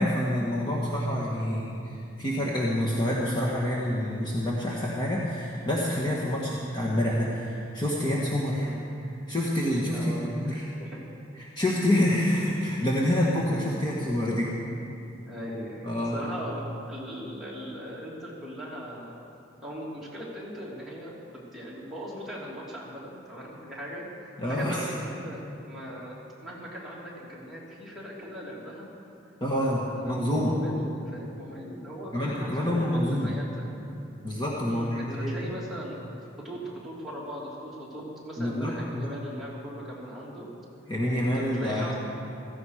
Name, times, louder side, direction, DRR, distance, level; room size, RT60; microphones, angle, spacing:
voice 1, 0.0-1.9 2.2-8.7 9.3-10.7 11.4-14.5 15.8-16.3 24.4-24.9 29.4-30.6 32.1-33.3 34.2-35.3 38.4-39.1 40.9-41.9, left 1 dB, 25° left, -5 dB, 1.5 m, -27 dB
voice 2, 6.3-6.6 8.5-8.8 9.9-10.4 10.8-11.0 15.2-19.1 19.6-28.9 29.6-33.7 34.6-36.0 36.4-40.5 41.3-41.9, equal, ahead, -7 dB, 2.9 m, -39 dB
16.0 x 15.0 x 5.0 m, 2.6 s
head